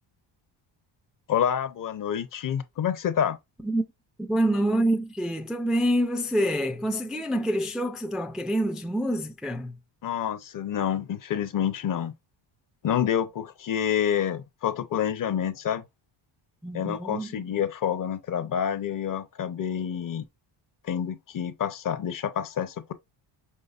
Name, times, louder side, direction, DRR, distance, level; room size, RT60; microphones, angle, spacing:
voice 1, 1.3-3.4 10.0-12.1 12.8-15.8 16.7-20.2 20.8-22.9, left 9 dB, 45° left, 0.7 m, -28 dB
voice 2, 4.2-9.8 16.6-17.4, right 1 dB, ahead, 0.4 m, -26 dB
5.6 x 3.2 x 2.4 m
cardioid pair, 105°, 47 cm